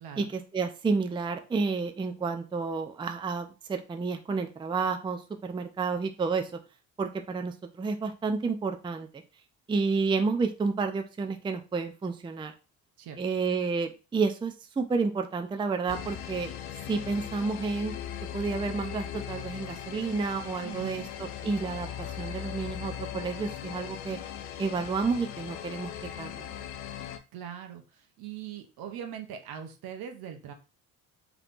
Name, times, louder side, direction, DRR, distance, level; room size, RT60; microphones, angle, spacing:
voice 1, 0.2-6.5 7.0-9.2 9.7-12.5 13.2-16.5 16.9-17.9 18.3-21.9 22.2-24.2 24.6-25.9 26.2-26.5, right 4 dB, 15° right, 6 dB, 0.4 m, -30 dB
sound 1, 15.9-27.2, left 10 dB, 85° left, 0.5 m, -39 dB
voice 2, 20.6-21.1 27.3-30.5, right 9 dB, 65° right, 5 dB, 0.8 m, -41 dB
3.3 x 3.0 x 2.5 m, 0.32 s
supercardioid pair, 65°, 38 cm